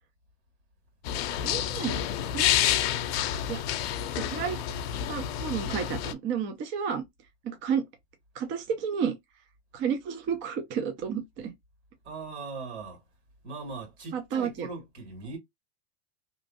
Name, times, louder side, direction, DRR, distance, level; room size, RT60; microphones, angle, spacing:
sound 1, 1.0-6.1, left 11 dB, 65° left, 0.6 m, -29 dB
voice 1, 1.4-2.0 2.3-2.5 3.5-3.6 4.1-4.6 5.1-7.0 7.4-7.8 8.3-9.1 9.7-11.5 14.1-14.7, right 7 dB, 35° right, 0.7 m, -31 dB
voice 2, 12.0-13.0 13.4-15.4, right 4 dB, 80° right, 2.1 m, -39 dB
3.0 x 2.6 x 2.5 m
hypercardioid pair, 115°, 33 cm